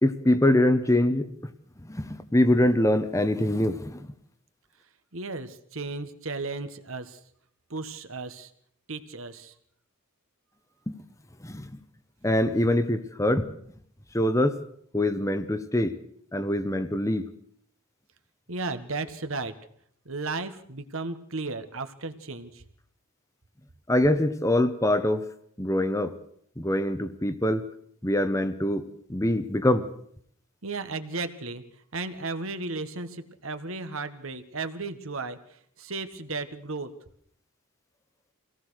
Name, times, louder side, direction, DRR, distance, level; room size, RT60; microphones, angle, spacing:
voice 1, 0.0-1.3 1.8-4.0 10.9-11.0 11.4-11.7 12.2-13.5 14.1-14.6 14.9-15.9 16.3-17.3 23.9-25.2 25.6-26.2 26.6-27.7 28.0-28.8 29.1-29.9, left 1 dB, 15° left, 11 dB, 1.0 m, -24 dB
voice 2, 5.1-7.2 7.7-8.5 8.9-9.5 18.5-19.5 20.0-22.6 30.6-31.6 31.9-35.4 35.8-36.9, right 3 dB, 70° right, 10 dB, 1.6 m, -34 dB
24.5 x 18.0 x 6.5 m, 0.65 s
head